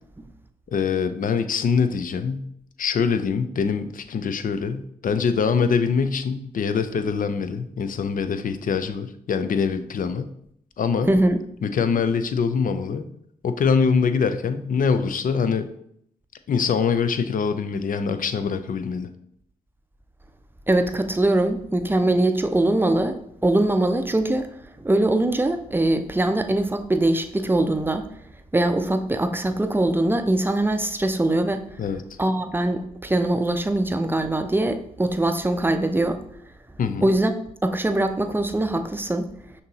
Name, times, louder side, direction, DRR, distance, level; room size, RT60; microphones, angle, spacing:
voice 1, 0.7-2.5 2.8-10.3 10.8-11.1 11.6-13.1 13.4-15.7 16.5-19.1 31.8-32.0 36.8-37.0, left 5 dB, 50° left, 10 dB, 0.5 m, -24 dB
voice 2, 11.1-11.4 20.7-23.2 23.4-24.5 24.8-28.1 28.5-31.8 32.2-36.2 37.0-37.3 37.6-39.3, right 1 dB, 10° right, 8 dB, 0.5 m, -22 dB
5.8 x 2.7 x 2.8 m, 0.71 s
supercardioid pair, 40°, 17 cm